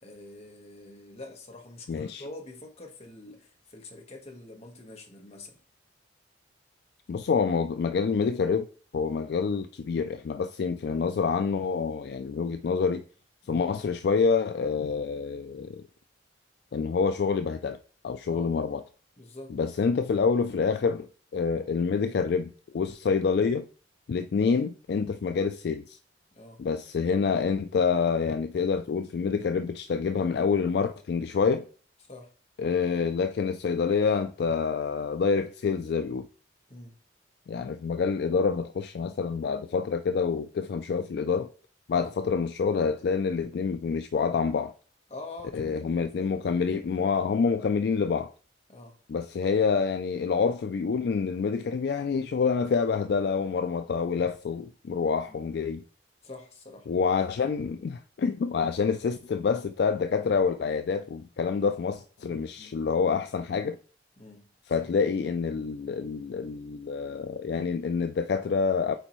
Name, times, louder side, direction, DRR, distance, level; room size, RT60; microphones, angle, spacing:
voice 1, 0.0-5.6 13.4-13.6 18.3-18.5 19.2-19.9 26.3-26.6 32.0-32.3 36.7-37.0 41.9-42.1 45.1-46.3 48.7-49.0 55.3-55.4 56.2-56.9 62.6-62.8 64.2-64.5, left 2 dB, 35° left, 1.2 m, -45 dB
voice 2, 1.9-2.2 7.1-8.7 8.9-13.0 13.5-15.8 16.7-17.8 18.0-18.8 19.5-21.1 21.3-23.7 24.1-26.0 26.6-31.7 32.6-36.2 37.5-41.5 41.9-44.7 45.5-48.3 49.1-55.8 56.9-63.8 64.7-68.9, left 5 dB, 60° left, 0.3 m, -27 dB
8.1 x 4.4 x 3.1 m
head